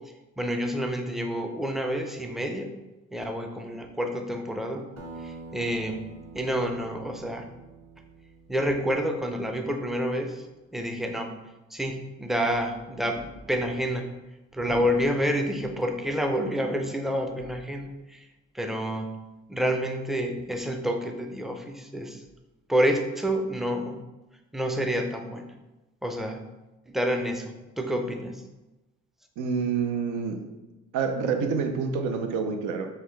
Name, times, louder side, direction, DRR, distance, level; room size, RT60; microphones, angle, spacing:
voice 1, 0.4-2.7 3.1-4.9 5.2-6.0 6.3-7.4 8.5-10.5 10.7-11.3 11.7-14.1 14.5-18.3 18.5-19.1 19.5-22.2 22.7-24.0 24.5-25.5 26.0-26.4 26.9-28.4, equal, ahead, 4 dB, 0.4 m, -28 dB
Acoustic guitar, 5.0-9.8, right 3 dB, 55° right, 0.9 m, -46 dB
voice 2, 29.4-30.4 30.9-32.9, right 5 dB, 90° right, 5 dB, 0.6 m, -27 dB
5.6 x 2.2 x 3.2 m, 1.1 s
cardioid pair, 90°, 30 cm